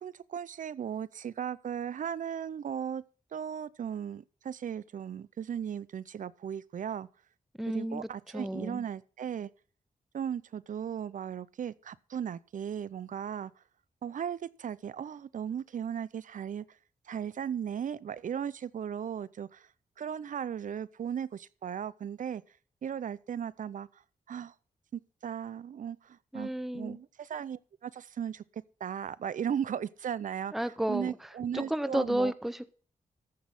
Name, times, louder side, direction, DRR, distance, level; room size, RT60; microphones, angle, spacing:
voice 1, 0.0-3.0 3.3-7.1 7.7-9.5 10.1-13.5 14.0-16.6 17.1-19.7 20.0-22.4 22.8-23.9 24.3-24.5 24.9-28.4 28.8-32.3, right 8 dB, 65° right, 0.5 m, -36 dB
voice 2, 7.6-8.8 26.3-27.0 30.5-31.2 31.5-32.8, right 1 dB, ahead, 0.6 m, -32 dB
14.0 x 6.2 x 5.5 m
cardioid pair, 90°, 14 cm